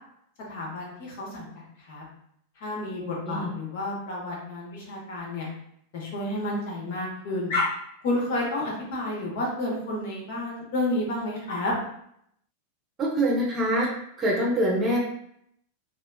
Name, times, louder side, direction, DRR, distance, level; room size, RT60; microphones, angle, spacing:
voice 1, 0.5-2.0 2.6-5.5 5.9-7.7 8.0-11.7, left 1 dB, 50° left, -3 dB, 0.9 m, -30 dB
voice 2, 3.0-3.5 13.0-13.9 14.2-15.0, right 1 dB, 20° right, -3 dB, 0.8 m, -25 dB
3.1 x 2.5 x 2.3 m, 0.72 s
figure-of-eight pair, 90°, 0 cm